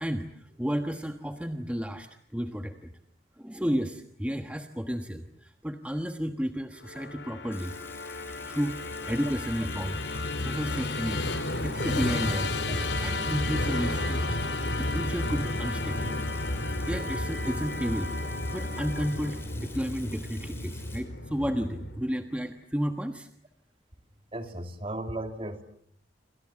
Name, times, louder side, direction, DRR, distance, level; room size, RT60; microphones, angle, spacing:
voice 1, 0.0-2.9 3.4-7.7 8.5-10.0 10.4-11.4 11.6-12.6 13.0-16.1 16.8-18.1 18.5-23.3, equal, 5° right, 1.3 m, -32 dB
Musical instrument, 6.8-22.1, left 2 dB, 70° left, 4.0 m, -32 dB
Water tap faucet / Sink (filling or washing), 7.5-21.0, left 3 dB, 15° left, 6.0 m, -50 dB
voice 2, 24.3-25.6, right 1 dB, 30° right, 2.8 m, -35 dB
29.0 x 26.5 x 7.4 m
head